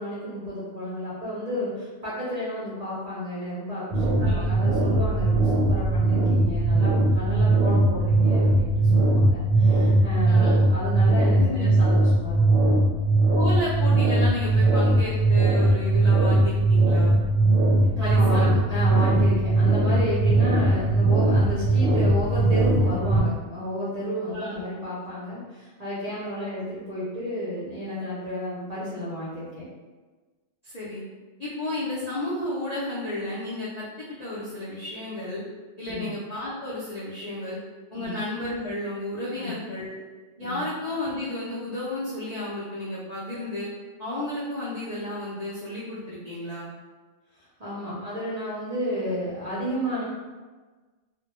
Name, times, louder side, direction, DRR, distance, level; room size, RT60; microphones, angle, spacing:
voice 1, 0.0-12.8 17.9-29.7 35.8-36.1 37.9-38.2 39.3-39.5 40.4-40.6 47.6-50.0, equal, 50° right, -9 dB, 0.5 m, -32 dB
Sci Fi Shield Noise, 3.9-23.2, right 2 dB, 90° right, 1.0 m, -20 dB
voice 2, 4.2-4.5 10.2-10.6 11.4-11.7 13.4-17.2 18.0-18.6 24.3-24.6 30.6-31.0 31.4-35.4 35.8-37.6 37.9-40.0 40.4-43.7 44.0-46.7, left 1 dB, 60° left, -8 dB, 0.4 m, -32 dB
2.1 x 2.1 x 2.9 m, 1.3 s
omnidirectional pair, 1.3 m